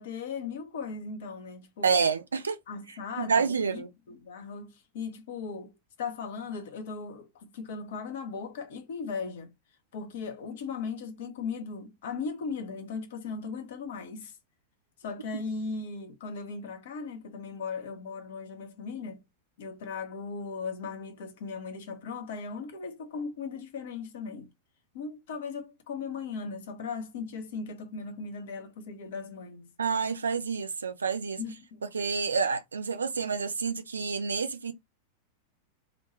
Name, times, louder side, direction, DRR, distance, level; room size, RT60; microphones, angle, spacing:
voice 1, 0.0-2.0 2.7-3.8 4.1-9.5 9.9-14.4 15.0-19.2 19.6-24.5 24.9-29.7 31.4-31.8, left 5 dB, 55° left, 0.7 m, -38 dB
voice 2, 1.8-2.6 3.2-3.9 29.8-31.4 31.9-34.7, right 5 dB, 75° right, 0.4 m, -28 dB
2.5 x 2.2 x 3.0 m
figure-of-eight pair, 90°, 0 cm